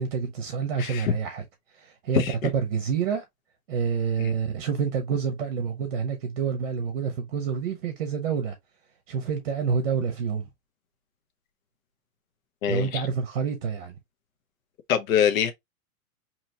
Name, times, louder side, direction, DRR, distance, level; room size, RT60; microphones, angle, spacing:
voice 1, 0.0-1.4 1.7-3.2 3.7-8.6 9.1-10.5 12.7-13.9, right 6 dB, 40° right, 0.8 m, -28 dB
voice 2, 0.8-1.1 2.1-2.3 4.2-4.3 12.6-13.0 14.9-15.5, left 9 dB, 65° left, 0.7 m, -24 dB
4.3 x 3.0 x 2.6 m
hypercardioid pair, 170°, 44 cm